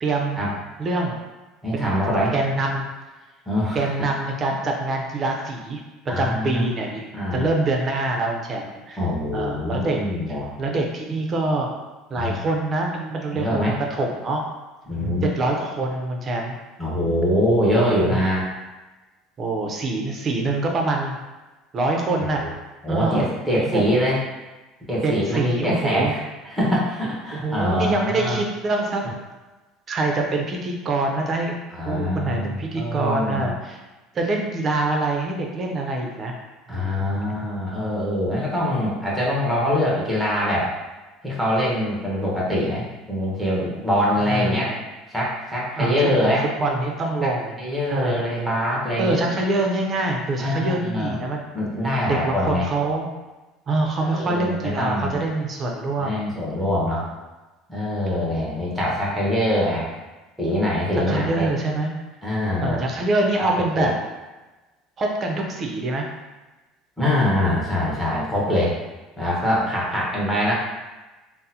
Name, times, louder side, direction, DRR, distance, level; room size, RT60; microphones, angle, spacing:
voice 1, 0.0-0.4 0.8-1.2 1.7-1.9 2.3-2.9 3.7-5.8 6.2-9.0 9.3-11.7 12.1-14.5 15.3-16.5 17.7-18.2 19.4-21.2 21.7-22.4 22.9-23.3 23.6-24.0 25.0-26.1 27.3-29.1 29.9-31.6 31.9-33.8 34.1-36.3 36.7-37.0 44.3-44.7 45.8-47.5 47.9-48.2 49.0-51.4 52.0-53.1 53.7-56.2 61.1-61.9 62.6-63.9 65.0-66.0, right 2 dB, 30° right, 1 dB, 0.5 m, -25 dB
voice 2, 1.6-2.3 3.5-3.9 6.1-6.7 7.1-7.5 9.0-10.5 12.2-12.4 13.3-13.7 14.9-15.3 16.8-18.5 22.4-22.5 22.8-24.2 24.9-26.2 26.4-28.4 31.7-33.5 36.7-40.7 41.2-44.7 45.1-46.4 47.2-47.3 47.6-49.2 50.4-51.2 51.5-52.7 54.0-55.2 56.0-57.1 57.7-59.9 60.4-61.5 62.2-62.8 63.4-63.9 67.0-68.7 69.2-70.5, left 1 dB, ahead, -6 dB, 1.0 m, -23 dB
3.7 x 2.0 x 2.8 m, 1.2 s
cardioid pair, 130°, 0 cm